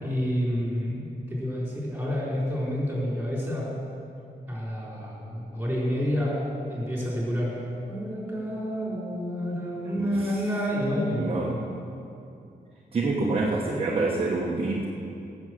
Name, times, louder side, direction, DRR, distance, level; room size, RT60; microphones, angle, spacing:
voice 1, 0.0-3.8 4.5-6.4 6.7-7.6 7.9-11.5, equal, 10° right, -5 dB, 4.1 m, -29 dB
voice 2, 10.0-10.4 11.1-11.6 12.9-14.9, right 3 dB, 35° right, -3 dB, 1.2 m, -27 dB
17.5 x 7.3 x 7.7 m, 2.6 s
wide cardioid pair, 170°, 17 cm